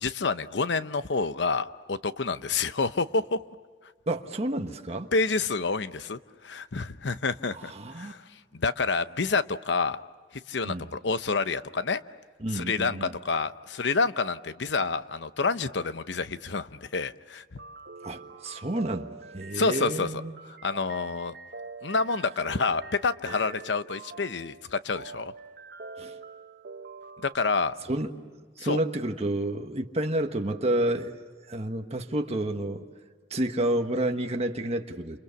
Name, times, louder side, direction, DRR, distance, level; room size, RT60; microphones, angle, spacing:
voice 1, 0.0-3.4 5.1-7.7 8.0-8.2 8.5-10.0 10.3-12.0 12.5-17.4 19.5-20.2 20.5-21.3 21.8-25.3 27.2-27.8 28.6-28.8, left 4 dB, 65° left, 13 dB, 0.8 m, -28 dB
voice 2, 4.1-5.1 7.7-8.1 10.6-10.9 12.4-13.1 18.0-20.3 26.0-26.1 27.9-28.1 28.6-31.2 31.5-32.8 33.3-35.2, right 1 dB, 35° right, 5 dB, 1.4 m, -30 dB
sound 1, 17.6-27.3, right 4 dB, 55° right, 1.0 m, -45 dB
30.0 x 28.0 x 7.0 m, 1.5 s
head